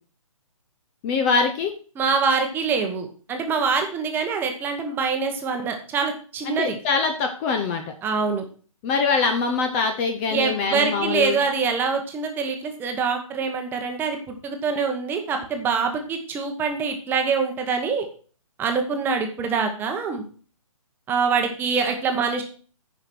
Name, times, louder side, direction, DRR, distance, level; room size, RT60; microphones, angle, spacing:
voice 1, 1.0-1.7 6.5-7.9 8.8-11.4, left 5 dB, 20° left, 6 dB, 0.8 m, -23 dB
voice 2, 2.0-6.8 8.0-8.4 10.3-18.1 18.6-20.2 21.1-22.4, right 5 dB, 10° right, 4 dB, 1.1 m, -25 dB
9.8 x 5.0 x 6.0 m, 0.40 s
hypercardioid pair, 160°, 18 cm